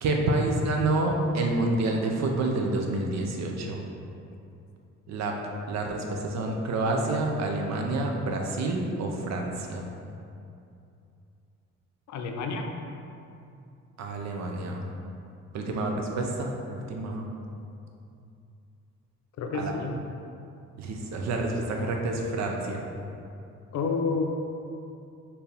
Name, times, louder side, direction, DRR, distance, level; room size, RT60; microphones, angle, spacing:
voice 1, 0.0-3.8 5.1-5.3 5.7-9.9 14.0-14.8 15.5-17.3 19.5-19.7 20.8-22.8, right 2 dB, 65° right, 1 dB, 0.6 m, -28 dB
voice 2, 12.1-12.7 19.4-19.9 23.7-24.3, left 4 dB, 65° left, 3 dB, 0.5 m, -29 dB
4.3 x 2.7 x 3.4 m, 2.6 s
cardioid pair, 90°, 30 cm